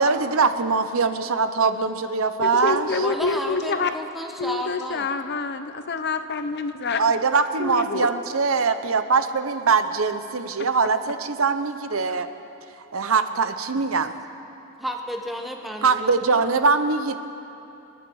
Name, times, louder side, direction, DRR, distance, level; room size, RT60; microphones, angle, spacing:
voice 1, 0.0-2.9 7.0-12.3 12.9-14.1 15.8-17.2, right 4 dB, 70° right, 10 dB, 0.8 m, -22 dB
voice 2, 2.4-3.9 4.4-7.0 7.6-8.1 10.6-10.7, left 4 dB, 50° left, 9 dB, 0.8 m, -27 dB
voice 3, 3.0-5.1 14.8-16.4, equal, ahead, 2 dB, 1.2 m, -32 dB
29.0 x 10.0 x 4.8 m, 2.9 s
head